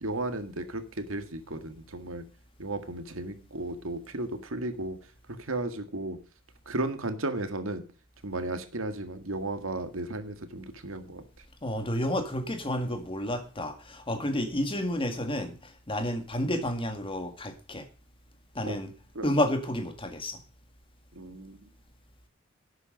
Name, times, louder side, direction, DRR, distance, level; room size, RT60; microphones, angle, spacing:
voice 1, 0.0-2.2 2.6-5.0 5.4-6.2 6.7-7.8 8.2-11.2 18.6-18.8 19.2-19.3 21.2-21.6, right 2 dB, 85° right, 8 dB, 1.9 m, -34 dB
voice 2, 11.6-17.9 18.6-18.9 19.2-20.4, left 1 dB, 25° left, 7 dB, 1.9 m, -30 dB
12.0 x 8.1 x 5.3 m, 0.38 s
head